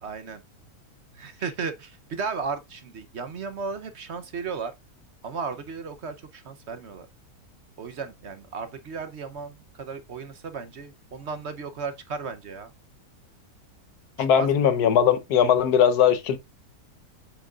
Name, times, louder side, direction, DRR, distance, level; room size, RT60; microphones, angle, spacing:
voice 1, 0.0-0.4 1.1-4.7 5.2-7.1 7.8-12.7 14.2-14.6, right 5 dB, 55° right, 0.9 m, -35 dB
voice 2, 14.2-16.4, left 8 dB, 85° left, 1.4 m, -20 dB
8.2 x 6.2 x 2.4 m
omnidirectional pair, 1.6 m